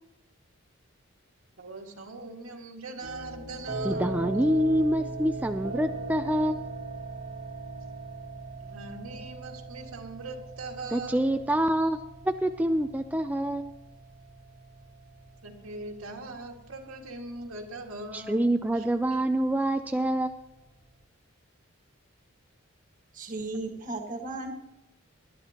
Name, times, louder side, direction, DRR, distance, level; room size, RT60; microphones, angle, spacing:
voice 1, 1.6-4.2 8.6-11.2 15.4-18.5 18.7-19.2, right 2 dB, 90° right, 1 dB, 2.0 m, -41 dB
sound 1, 3.0-21.0, right 2 dB, 55° right, 1.4 m, -40 dB
voice 2, 3.8-6.7 10.9-12.0 12.2-13.7 18.1-20.4, right 1 dB, 5° right, 7 dB, 0.3 m, -26 dB
voice 3, 23.1-24.5, right 2 dB, 40° right, 2 dB, 1.5 m, -35 dB
19.5 x 11.5 x 2.9 m, 0.90 s
head